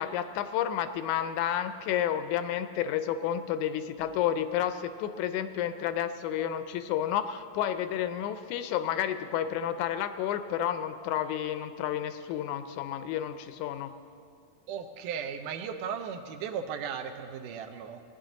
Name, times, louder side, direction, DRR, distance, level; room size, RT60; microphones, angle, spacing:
voice 1, 0.0-13.9, left 10 dB, 80° left, 10 dB, 1.9 m, -31 dB
voice 2, 14.7-18.0, right 7 dB, 90° right, 7 dB, 2.2 m, -36 dB
19.0 x 9.8 x 3.8 m, 2.4 s
omnidirectional pair, 3.5 m